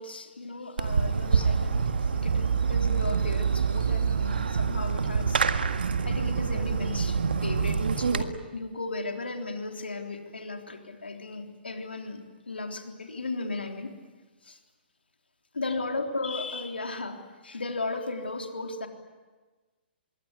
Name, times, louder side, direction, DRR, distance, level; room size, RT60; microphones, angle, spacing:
voice 1, 0.0-5.4 6.0-14.0 14.4-14.6 15.5-18.9, left 3 dB, 70° left, 4 dB, 3.6 m, -35 dB
Fireworks, 0.8-8.2, right 6 dB, 65° right, 1.7 m, -26 dB
25.5 x 22.5 x 9.7 m, 1.3 s
figure-of-eight pair, 120°, 6 cm